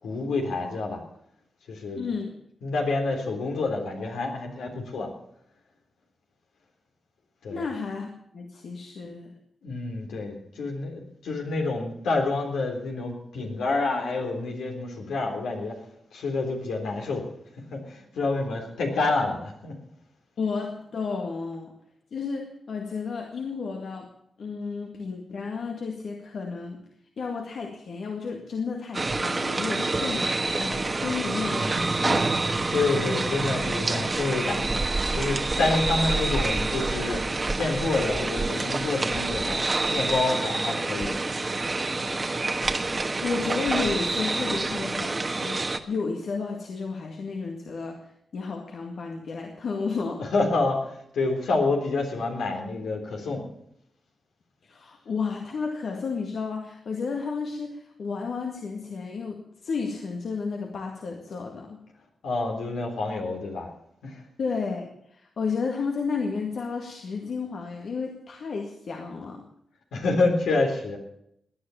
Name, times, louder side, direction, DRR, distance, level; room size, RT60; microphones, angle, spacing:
voice 1, 0.0-1.0 1.7-2.1 2.6-5.1 7.4-7.6 9.6-15.8 16.1-17.3 17.6-19.7 32.7-34.8 35.1-41.2 50.2-53.5 62.2-63.7 64.0-64.2 69.9-71.0, left 3 dB, 85° left, 1 dB, 3.7 m, -28 dB
voice 2, 1.9-2.3 7.5-9.3 20.4-21.7 22.1-24.1 24.4-26.8 27.2-32.4 43.2-50.2 54.6-61.8 64.4-69.5, left 5 dB, 70° left, 2 dB, 2.0 m, -32 dB
sound 1, 28.9-45.8, right 3 dB, 35° right, 1.4 m, -27 dB
17.5 x 10.0 x 7.0 m, 0.73 s
cardioid pair, 55°, 0 cm